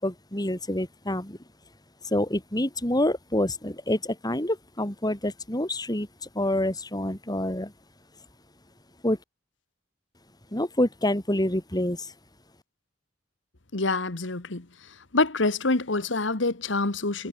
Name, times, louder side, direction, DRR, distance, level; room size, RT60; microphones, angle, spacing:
voice 1, 0.0-1.4 2.1-6.1 6.3-7.7 9.0-9.2 10.5-12.1, left 1 dB, 20° left, 4.2 m, -27 dB
voice 2, 13.7-14.7 15.1-17.3, left 3 dB, 70° left, 1.7 m, -26 dB
head